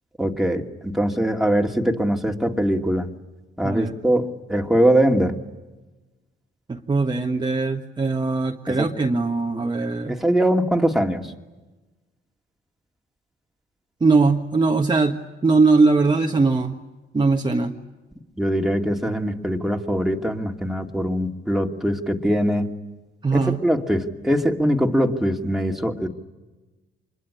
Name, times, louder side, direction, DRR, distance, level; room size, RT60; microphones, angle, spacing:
voice 1, 0.2-3.1 3.6-5.4 8.7-8.9 10.1-11.3 18.4-22.7 23.3-26.1, equal, ahead, 2 dB, 2.5 m, -22 dB
voice 2, 3.6-3.9 6.7-10.2 14.0-16.8 17.1-17.8 23.2-23.6, right 3 dB, 20° right, 2 dB, 1.5 m, -20 dB
25.5 x 21.5 x 9.9 m, 1.2 s
cardioid pair, 90°, 20 cm